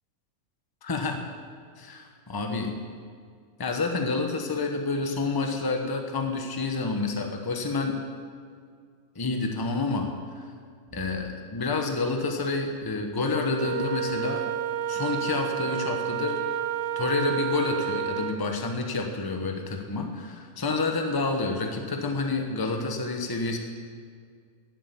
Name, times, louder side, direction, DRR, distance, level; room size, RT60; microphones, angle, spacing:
voice 1, 0.8-1.2 1.8-2.7 3.6-8.0 9.1-10.5 10.9-14.5 14.9-16.4 17.0-23.6, left 3 dB, 20° left, 3 dB, 0.9 m, -29 dB
Wind instrument woodwind instrument, 13.6-18.4, right 9 dB, 65° right, 0.6 m, -30 dB
11.0 x 7.8 x 8.4 m, 2.1 s
omnidirectional pair, 1.6 m